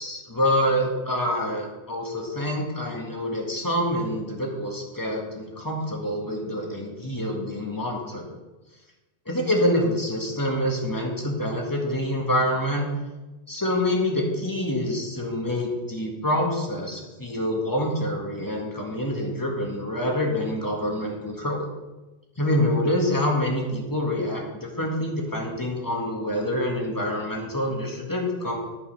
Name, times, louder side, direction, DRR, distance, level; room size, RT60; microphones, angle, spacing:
voice 1, 0.0-8.2 9.3-12.9 13.5-21.7 22.4-28.6, left 1 dB, 20° left, -1 dB, 1.7 m, -26 dB
11.0 x 5.5 x 5.3 m, 1.1 s
omnidirectional pair, 1.2 m